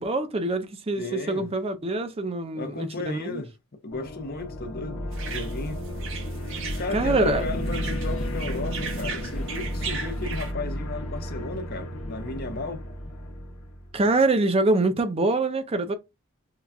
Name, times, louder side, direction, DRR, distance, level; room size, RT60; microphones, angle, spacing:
voice 1, 0.0-3.4 6.9-7.4 13.9-15.9, right 2 dB, 25° right, 0.4 m, -24 dB
voice 2, 1.0-1.5 2.5-5.8 6.8-12.8, left 3 dB, 45° left, 0.6 m, -35 dB
sound 1, 3.9-14.1, equal, 75° left, 0.9 m, -33 dB
sound 2, 5.1-10.5, right 4 dB, 60° right, 0.9 m, -37 dB
5.5 x 2.3 x 2.3 m
head